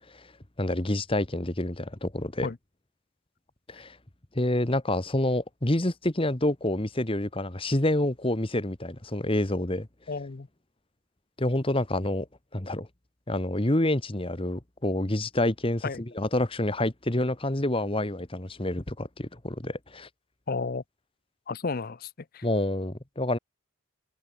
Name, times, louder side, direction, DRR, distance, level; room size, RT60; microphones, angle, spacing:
voice 1, 0.6-2.5 3.7-3.9 4.3-9.9 11.4-12.3 12.5-12.9 13.3-20.1 22.4-23.4, left 1 dB, 25° left, 1.5 m, -28 dB
voice 2, 10.1-10.5 15.8-16.0 20.5-20.8 21.5-22.4, left 4 dB, 45° left, 0.6 m, -32 dB
head